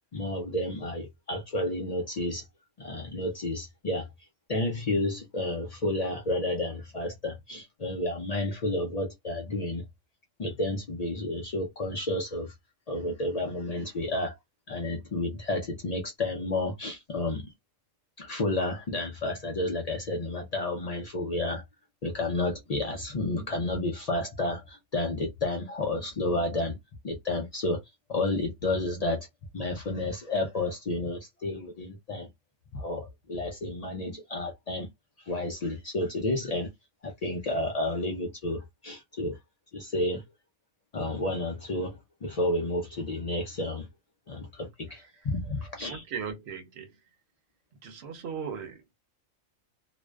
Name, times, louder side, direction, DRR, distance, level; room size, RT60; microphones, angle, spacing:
voice 1, 0.1-2.4 2.8-4.1 4.5-9.8 10.4-12.5 12.9-14.4 14.7-17.5 18.2-21.6 22.0-26.8 27.0-27.8 28.1-29.3 29.5-32.3 32.7-34.9 35.2-36.7 37.0-39.4 39.7-40.2 40.9-43.9 44.3-46.0, left 2 dB, 80° left, 0.3 m, -31 dB
voice 2, 45.9-46.9 47.8-48.8, right 6 dB, 60° right, 0.9 m, -37 dB
2.5 x 2.2 x 2.2 m
omnidirectional pair, 1.3 m